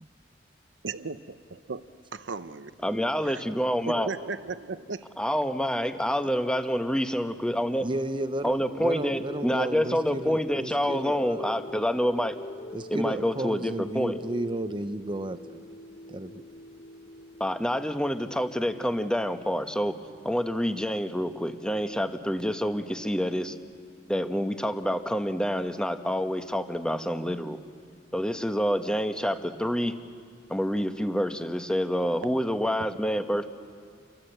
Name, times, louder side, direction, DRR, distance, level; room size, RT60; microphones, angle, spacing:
voice 1, 0.8-1.8 2.1-3.0 3.2-3.4 3.8-5.0 32.2-32.3, right 4 dB, 70° right, 12 dB, 0.8 m, -36 dB
voice 2, 2.8-4.1 5.2-7.9 8.4-12.4 12.9-14.2 17.4-20.0 20.2-23.5 24.1-27.6 28.1-30.0 30.5-33.5, equal, 5° left, 7 dB, 1.1 m, -27 dB
voice 3, 7.8-11.6 12.7-15.6 16.1-16.4, right 1 dB, 25° right, 10 dB, 0.7 m, -33 dB
sound 1, 8.6-18.6, left 1 dB, 45° left, 1.1 m, -44 dB
29.5 x 23.5 x 8.0 m, 2.1 s
head